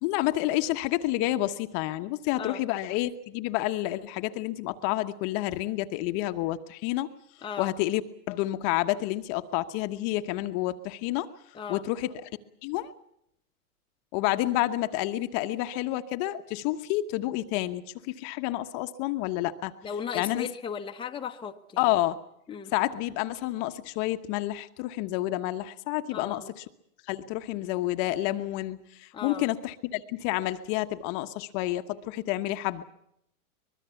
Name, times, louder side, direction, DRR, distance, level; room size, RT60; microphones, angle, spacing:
voice 1, 0.0-7.1 7.6-8.0 8.3-11.3 11.7-12.3 12.6-12.9 14.1-19.7 20.1-20.5 21.8-22.2 22.7-26.6 27.1-32.8, left 15 dB, 40° left, 9 dB, 1.1 m, -29 dB
voice 2, 7.4-7.7 11.5-11.8 19.8-21.8 22.5-22.7 26.1-26.5 29.1-29.5, left 7 dB, 10° left, 4 dB, 1.1 m, -36 dB
24.0 x 21.5 x 7.0 m, 0.75 s
hypercardioid pair, 120°, 44 cm